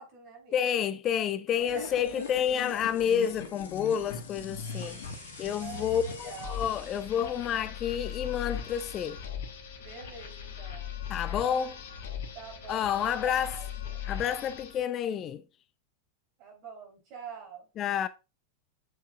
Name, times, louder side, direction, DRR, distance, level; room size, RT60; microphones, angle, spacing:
voice 1, 0.0-0.7 1.5-2.5 5.6-6.7 9.8-10.9 12.3-14.0 16.4-17.7, right 6 dB, 40° right, 3.9 m, -45 dB
voice 2, 0.5-9.2 11.1-11.8 12.7-13.6 14.1-15.4 17.8-18.1, left 9 dB, 30° left, 0.4 m, -29 dB
sound 1, 1.6-14.8, left 7 dB, 60° left, 1.3 m, -40 dB
sound 2, 4.4-7.7 8.0-8.7, right 2 dB, 70° right, 4.3 m, -52 dB
7.9 x 7.2 x 2.5 m
figure-of-eight pair, 90°, 0 cm